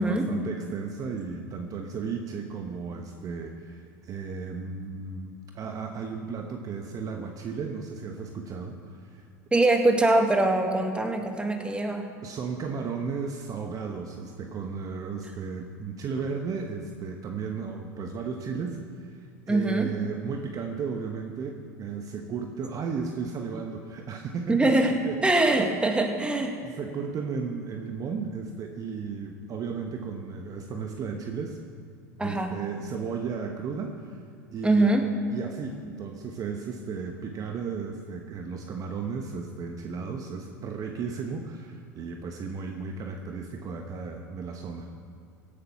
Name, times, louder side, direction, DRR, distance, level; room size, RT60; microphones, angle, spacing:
voice 1, 0.0-9.3 12.2-24.7 25.0-25.2 26.4-31.6 32.2-34.2 34.5-34.9 35.3-44.9, right 5 dB, 35° right, 4 dB, 1.2 m, -34 dB
voice 2, 9.5-12.1 19.5-19.9 24.5-24.9 25.2-26.6 32.2-32.6 34.6-35.1, right 2 dB, 10° right, 4 dB, 2.0 m, -23 dB
16.5 x 10.0 x 6.0 m, 2.4 s
hypercardioid pair, 85°, 10 cm